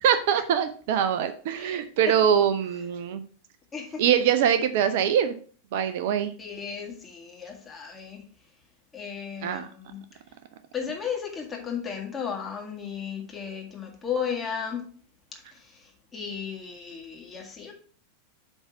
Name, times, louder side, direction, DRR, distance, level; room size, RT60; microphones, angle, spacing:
voice 1, 0.0-3.2 4.0-5.3 5.7-6.3 9.4-9.7, right 8 dB, 50° right, 11 dB, 0.5 m, -23 dB
voice 2, 1.5-2.2 3.7-4.0 6.4-8.2 8.9-10.0 10.7-14.8 15.5-17.7, left 7 dB, 15° left, 0 dB, 1.9 m, -35 dB
8.1 x 3.6 x 5.7 m, 0.43 s
figure-of-eight pair, 90°, 0 cm